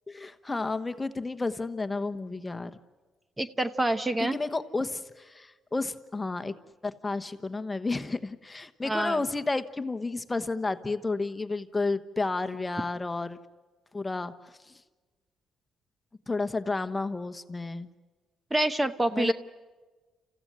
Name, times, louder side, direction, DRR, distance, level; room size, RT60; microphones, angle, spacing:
voice 1, 0.1-2.7 4.2-6.5 6.8-13.4 13.9-14.3 14.7-14.8 16.3-17.9 19.1-19.3, left 3 dB, 20° left, 10 dB, 1.1 m, -31 dB
voice 2, 3.4-4.4 8.8-9.2 18.5-19.3, right 1 dB, 15° right, 11 dB, 0.9 m, -26 dB
28.5 x 15.0 x 10.0 m, 1.3 s
cardioid pair, 90°, 0 cm